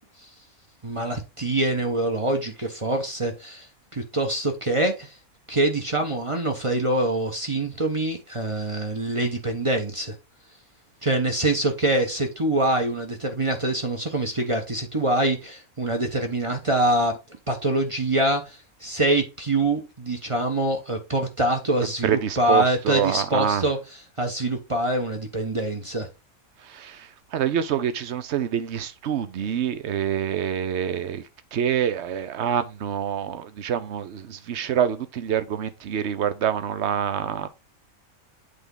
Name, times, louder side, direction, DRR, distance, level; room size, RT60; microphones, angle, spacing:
voice 1, 0.8-5.1 5.5-10.1 11.0-17.1 17.5-23.8 24.2-26.1, right 1 dB, 25° right, 1.0 m, -25 dB
voice 2, 22.0-23.6 26.6-37.5, right 9 dB, 60° right, 0.9 m, -26 dB
8.2 x 3.5 x 3.9 m
omnidirectional pair, 1.4 m